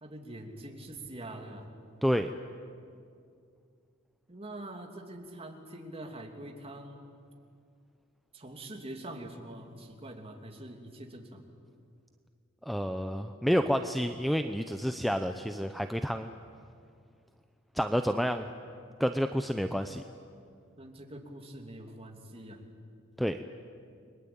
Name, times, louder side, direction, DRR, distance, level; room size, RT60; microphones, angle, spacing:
voice 1, 0.0-1.7 4.3-7.1 8.3-11.4 20.8-22.6, right 1 dB, 30° right, 3 dB, 3.0 m, -44 dB
voice 2, 2.0-2.3 12.6-16.3 17.7-18.5 19.0-20.0 23.2-23.4, equal, ahead, 7 dB, 0.7 m, -29 dB
30.0 x 22.5 x 8.8 m, 2.3 s
head